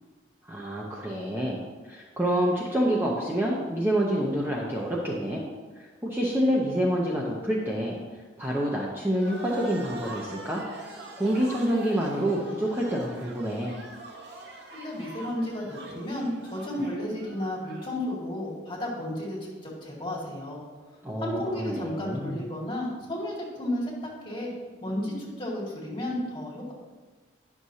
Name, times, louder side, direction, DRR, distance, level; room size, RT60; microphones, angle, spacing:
voice 1, 0.4-1.6 1.9-5.4 6.0-8.0 8.4-10.6 11.2-13.8 21.0-22.4, equal, 10° right, -4 dB, 0.6 m, -27 dB
sound 1, 9.2-17.9, right 1 dB, 60° right, 1.0 m, -44 dB
voice 2, 14.7-20.6 21.2-23.9 24.2-24.5 24.8-26.7, left 1 dB, 25° left, -5 dB, 1.9 m, -33 dB
10.0 x 6.3 x 2.8 m, 1.4 s
head